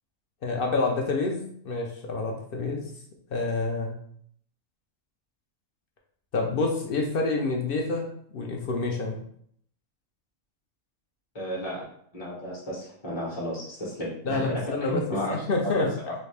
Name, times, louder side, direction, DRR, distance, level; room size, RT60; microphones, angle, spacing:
voice 1, 0.4-2.9 3.3-3.9 6.3-9.2 14.3-15.0 15.3-15.9, left 3 dB, 55° left, 1 dB, 0.6 m, -28 dB
voice 2, 11.3-11.8 12.1-15.4 15.8-16.1, equal, 25° left, -7 dB, 0.9 m, -33 dB
3.2 x 2.7 x 3.3 m, 0.64 s
omnidirectional pair, 1.3 m